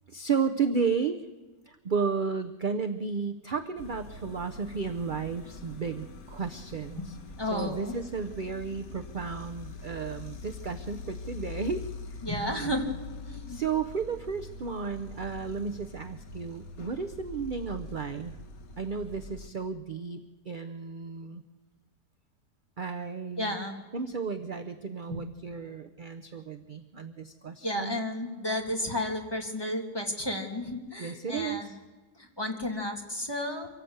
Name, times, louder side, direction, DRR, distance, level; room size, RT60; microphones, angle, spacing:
voice 1, 0.1-1.2 1.7-7.2 7.5-11.8 13.5-18.3 18.8-21.4 22.8-23.6 23.9-28.0 31.0-31.8, right 5 dB, 45° right, 8 dB, 0.7 m, -33 dB
sound 1, 3.8-19.5, left 3 dB, 60° left, 1.7 m, -44 dB
voice 2, 7.4-7.9 12.2-12.9 13.2-13.6 23.4-23.8 25.1-25.2 27.6-31.7 32.2-33.7, left 1 dB, 15° left, 1 dB, 2.2 m, -32 dB
25.0 x 17.0 x 8.0 m, 1.2 s
omnidirectional pair, 1.7 m